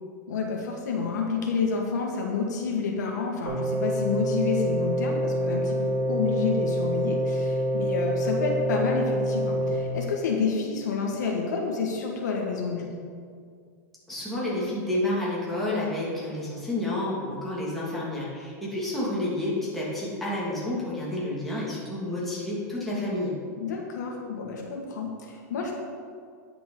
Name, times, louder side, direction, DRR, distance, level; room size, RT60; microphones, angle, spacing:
voice 1, 0.3-13.1 23.6-25.7, left 5 dB, 85° left, 0 dB, 2.0 m, -29 dB
sound 1, 3.5-9.7, equal, 75° right, 2.7 m, -26 dB
voice 2, 14.1-23.3, left 1 dB, ahead, -7 dB, 2.6 m, -30 dB
10.0 x 6.1 x 5.6 m, 2.1 s
supercardioid pair, 145°, 9 cm